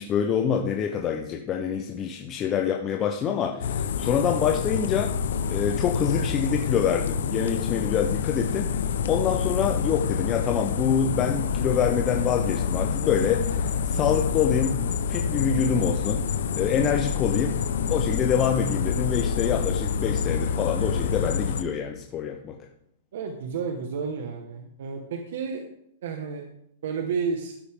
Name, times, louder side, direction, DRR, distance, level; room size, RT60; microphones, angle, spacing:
voice 1, 0.0-5.1 5.5-14.8 15.1-16.2 16.6-17.5 17.9-22.7, left 8 dB, 20° left, 3 dB, 0.7 m, -26 dB
sound 1, 3.6-21.6, left 6 dB, 80° left, 0.9 m, -27 dB
voice 2, 23.1-25.6 26.0-26.4 26.8-27.6, right 5 dB, 65° right, 4 dB, 1.5 m, -31 dB
12.5 x 9.6 x 3.7 m, 0.77 s
supercardioid pair, 165°, 0 cm